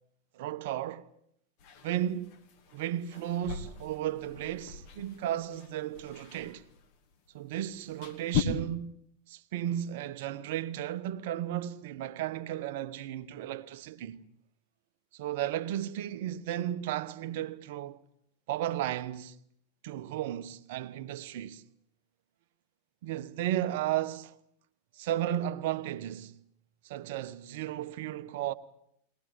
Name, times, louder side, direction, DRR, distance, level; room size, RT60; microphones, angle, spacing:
voice 1, 0.3-1.1 1.8-2.4 2.7-6.6 7.3-9.0 9.3-14.2 15.1-18.0 18.5-19.3 19.8-21.6 23.0-24.3 25.0-26.3 26.8-28.5, right 12 dB, 50° right, 1.0 m, -34 dB
sound 1, 1.6-8.4, left 9 dB, 45° left, 2.7 m, -39 dB
22.5 x 19.0 x 8.7 m
figure-of-eight pair, 90°, 0 cm